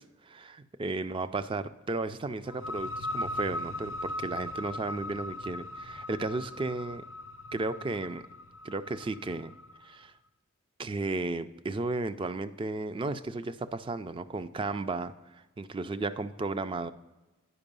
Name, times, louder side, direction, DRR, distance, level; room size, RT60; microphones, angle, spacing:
voice 1, 0.0-7.0 7.5-8.2 8.6-9.5 9.8-10.1 10.8-16.9, right 3 dB, 25° right, 13 dB, 0.3 m, -34 dB
sound 1, 2.4-9.9, left 1 dB, 70° left, 0.6 m, -39 dB
9.8 x 5.4 x 5.2 m, 1.1 s
head